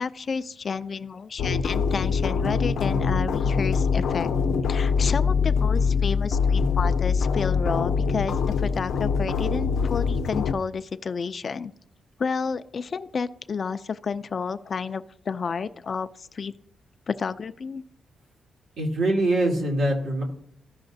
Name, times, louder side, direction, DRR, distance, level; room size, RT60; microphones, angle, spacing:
voice 1, 0.0-4.3 4.7-11.7 12.2-16.5 17.1-17.8, left 5 dB, 35° left, 12 dB, 0.3 m, -31 dB
sound 1, 1.4-10.5, left 5 dB, 85° left, 0.6 m, -23 dB
voice 2, 18.8-20.2, right 1 dB, 75° right, -1 dB, 2.2 m, -23 dB
15.5 x 5.7 x 2.6 m, 0.71 s
wide cardioid pair, 170°, 0 cm